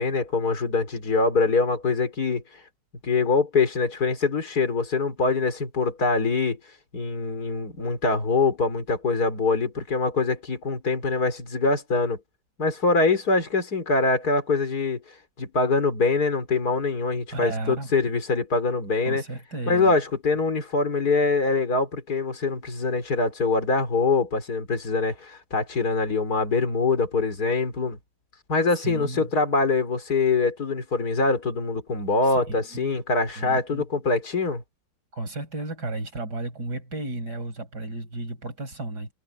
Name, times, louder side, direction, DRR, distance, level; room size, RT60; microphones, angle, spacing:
voice 1, 0.0-2.6 3.0-6.6 6.9-12.2 12.6-15.0 15.4-19.2 19.7-28.0 28.5-34.6, left 3 dB, 55° left, 4.4 m, -24 dB
voice 2, 17.3-17.9 19.1-19.9 28.8-29.3 32.2-33.0 33.4-33.8 35.1-39.1, right 2 dB, 60° right, 6.4 m, -33 dB
omnidirectional pair, 2.0 m